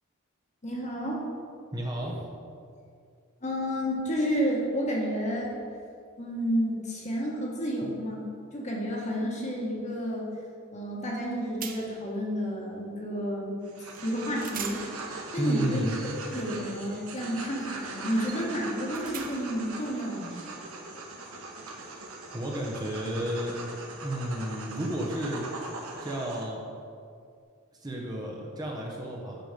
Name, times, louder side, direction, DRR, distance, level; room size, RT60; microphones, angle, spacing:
voice 1, 0.6-1.2 2.0-2.1 3.4-5.5 6.2-10.3 10.7-13.6 14.0-14.8 15.3-15.9 16.3-20.4, equal, 35° left, -3 dB, 1.6 m, -31 dB
voice 2, 1.7-2.1 15.4-15.9 21.8-23.6 24.0-25.4 26.0-26.6 27.8-29.4, right 1 dB, 20° right, -2 dB, 1.0 m, -32 dB
sound 1, 11.1-11.3 11.6-12.1 13.9-14.1 14.4-19.7, right 8 dB, 40° right, 0.6 m, -44 dB
sound 2, 13.6-26.4, right 3 dB, 85° right, 1.3 m, -41 dB
8.0 x 6.1 x 5.2 m, 2.3 s
head